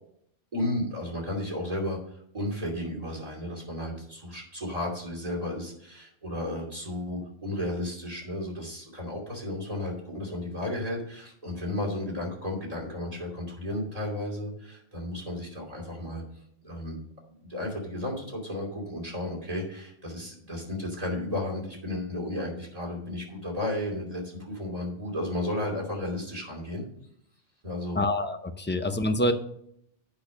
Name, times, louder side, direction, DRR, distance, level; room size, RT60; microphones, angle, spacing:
voice 1, 0.5-2.0 2.3-16.2 16.6-17.0 17.4-26.8 27.6-28.0, left 1 dB, 30° right, -1 dB, 2.9 m, -33 dB
voice 2, 27.9-29.3, left 1 dB, 20° left, 6 dB, 0.3 m, -26 dB
8.6 x 5.8 x 6.1 m, 0.71 s
omnidirectional pair, 1.2 m